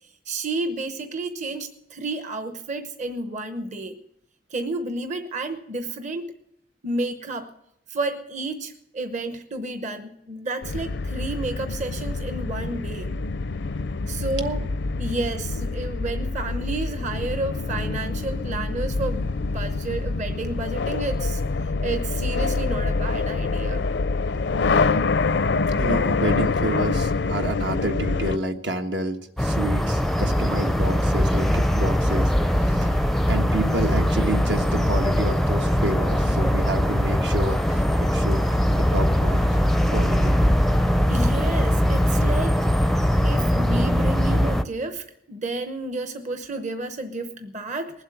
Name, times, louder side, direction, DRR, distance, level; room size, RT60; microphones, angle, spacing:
voice 1, 0.3-4.0 4.5-6.4 6.8-7.5 7.9-13.1 14.1-14.6 15.0-21.4 21.8-23.8 41.1-42.6 43.2-48.0, right 2 dB, 40° right, 8 dB, 0.9 m, -31 dB
sound 1, 10.6-28.4, left 3 dB, 70° left, 0.5 m, -26 dB
voice 2, 25.7-32.3 32.6-33.0 33.3-38.4 38.7-39.4 39.9-40.4, right 1 dB, 75° right, 4 dB, 1.4 m, -29 dB
sound 2, 29.4-44.6, equal, ahead, 0.5 m, -21 dB
20.0 x 8.0 x 9.1 m, 0.77 s
head